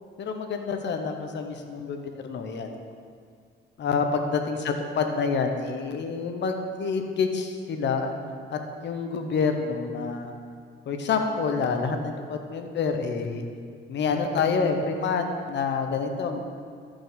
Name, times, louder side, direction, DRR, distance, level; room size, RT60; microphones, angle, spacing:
voice 1, 0.2-2.7 3.8-8.2 8.5-10.3 10.9-13.4 13.9-16.4, left 5 dB, 65° left, 5 dB, 1.0 m, -27 dB
13.5 x 5.0 x 4.1 m, 2.1 s
cardioid pair, 90°, 20 cm